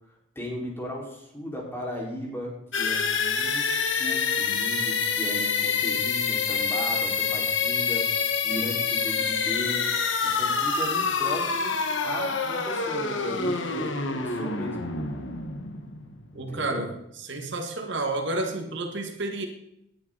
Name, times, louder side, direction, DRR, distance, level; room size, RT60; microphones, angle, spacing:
voice 1, 0.0-3.7 4.0-8.1 8.4-9.9 10.2-14.9 16.3-16.8, left 1 dB, 15° left, -3 dB, 4.9 m, -36 dB
sound 1, 2.7-16.4, left 5 dB, 70° left, 1.6 m, -27 dB
voice 2, 16.3-16.9 17.2-19.5, right 2 dB, 65° right, 4 dB, 1.8 m, -30 dB
19.5 x 10.5 x 4.1 m, 0.80 s
head